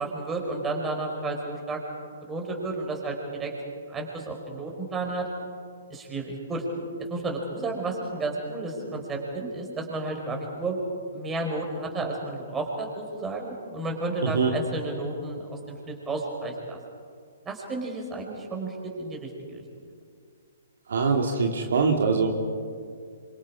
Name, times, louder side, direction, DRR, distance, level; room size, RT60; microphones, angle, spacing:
voice 1, 0.0-1.8 2.2-3.5 3.9-5.3 5.9-6.6 7.1-10.8 11.1-16.8 17.5-19.6, right 2 dB, 15° right, 1 dB, 5.1 m, -32 dB
voice 2, 14.2-14.5 20.9-22.3, right 5 dB, 65° right, 2 dB, 2.4 m, -23 dB
28.0 x 25.5 x 4.9 m, 2.2 s
figure-of-eight pair, 125°, 0 cm